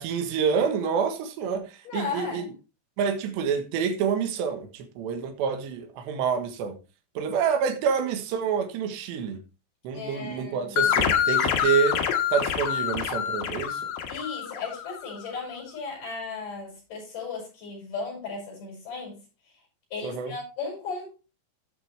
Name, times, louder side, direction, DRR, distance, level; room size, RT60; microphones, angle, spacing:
voice 1, 0.0-2.5 3.0-6.8 7.2-9.4 9.9-12.0 12.3-13.9 20.0-20.3, right 7 dB, 75° right, 3.5 m, -27 dB
voice 2, 1.8-2.5 9.9-11.0 14.1-19.2 19.9-21.1, left 4 dB, 45° left, 8.4 m, -36 dB
sound 1, 10.8-15.1, left 9 dB, 65° left, 2.8 m, -26 dB
15.5 x 6.0 x 3.4 m
omnidirectional pair, 5.1 m